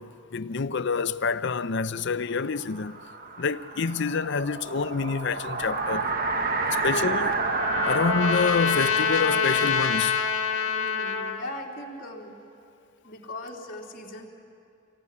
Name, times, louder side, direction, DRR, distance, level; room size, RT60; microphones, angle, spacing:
voice 1, 0.0-3.0 3.4-6.1 6.6-7.4 7.8-10.2, left 5 dB, 60° left, 0.6 m, -27 dB
sound 1, 2.4-11.1, right 3 dB, 45° right, 1.4 m, -30 dB
Trumpet, 6.8-11.4, left 6 dB, 80° left, 1.6 m, -26 dB
voice 2, 10.7-12.4 13.0-14.3, left 1 dB, 40° left, 3.3 m, -39 dB
26.0 x 20.5 x 9.8 m
head